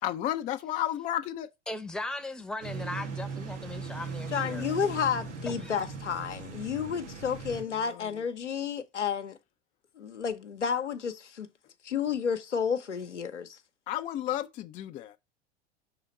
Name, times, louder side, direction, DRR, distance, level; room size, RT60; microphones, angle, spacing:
voice 1, 0.0-1.5 7.7-8.2 13.9-15.2, left 12 dB, 25° left, 0.4 m, -33 dB
voice 2, 1.7-4.8 5.6-5.8, left 2 dB, ahead, 0.7 m, -38 dB
sound 1, 2.6-7.6, right 4 dB, 85° right, 1.5 m, -39 dB
voice 3, 4.3-9.4 10.0-11.5 11.8-13.6, left 7 dB, 90° left, 0.8 m, -31 dB
5.6 x 3.7 x 5.2 m
hypercardioid pair, 85°, 34 cm